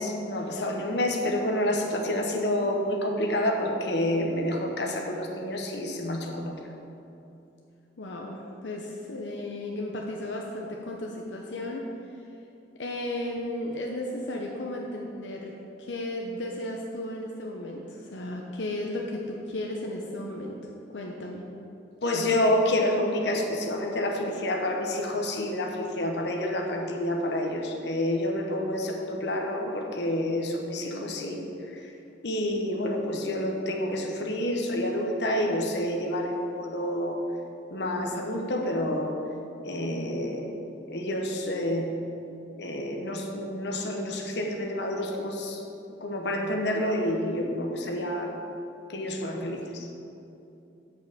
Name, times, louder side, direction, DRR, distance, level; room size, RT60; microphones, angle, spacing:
voice 1, 0.0-6.5 22.0-31.8 32.2-37.2 37.7-39.2 39.7-41.9 42.6-45.6 46.0-48.3 48.9-49.9, left 1 dB, 70° left, 1 dB, 1.1 m, -28 dB
voice 2, 8.0-11.8 12.8-15.5 15.8-20.6 20.9-21.4, left 1 dB, 90° left, -1 dB, 0.8 m, -34 dB
6.8 x 5.6 x 7.2 m, 2.8 s
head